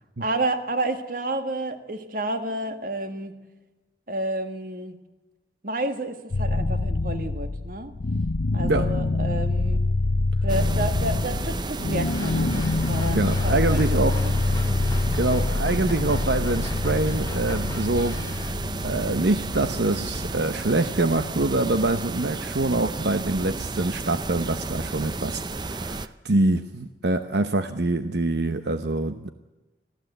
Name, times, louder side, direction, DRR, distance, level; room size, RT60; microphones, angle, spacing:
voice 1, 0.2-3.3 4.1-5.0 5.6-7.9 8.5-9.8 10.4-14.3, right 2 dB, 50° right, 8 dB, 1.8 m, -30 dB
sound 1, 6.3-20.3, left 2 dB, 65° left, 0.7 m, -26 dB
sound 2, 10.5-26.1, right 3 dB, 25° right, 0.6 m, -33 dB
sound 3, 12.0-18.6, left 2 dB, 20° left, 1.2 m, -40 dB
voice 2, 13.1-14.8 15.2-18.1 18.8-29.3, right 2 dB, 75° right, 9 dB, 0.9 m, -25 dB
25.5 x 15.0 x 8.0 m, 1.1 s
head